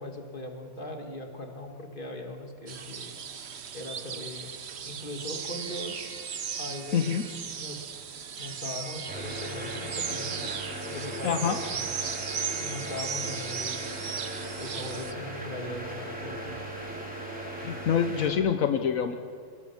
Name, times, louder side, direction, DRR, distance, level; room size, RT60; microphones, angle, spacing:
voice 1, 0.0-3.2 3.7-4.5 4.8-6.1 6.6-7.1 7.6-7.9 8.4-11.9 12.2-12.3 12.6-13.8 14.6-16.7, left 1 dB, 25° left, 3 dB, 2.4 m, -40 dB
sound 1, 2.7-15.1, right 7 dB, 55° right, 0.7 m, -37 dB
sound 2, 5.4-7.3 8.4-13.9, left 1 dB, 40° left, 6.4 m, -49 dB
voice 2, 6.9-7.2 11.2-11.6 17.6-19.1, left 8 dB, 60° left, 8 dB, 0.9 m, -26 dB
sound 3, 9.1-18.3, right 1 dB, 5° right, 4.1 m, -38 dB
25.5 x 20.0 x 7.2 m, 2.3 s
omnidirectional pair, 2.3 m